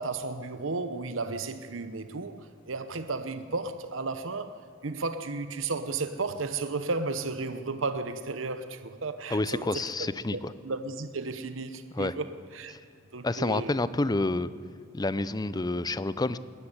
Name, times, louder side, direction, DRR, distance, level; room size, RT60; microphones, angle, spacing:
voice 1, 0.0-4.5 4.8-12.3 12.5-12.8 13.1-13.8, right 3 dB, 75° right, 0.9 m, -34 dB
voice 2, 9.3-10.5 11.9-12.1 13.2-14.5 14.9-16.4, left 2 dB, 20° left, 0.5 m, -28 dB
19.5 x 13.5 x 9.9 m
head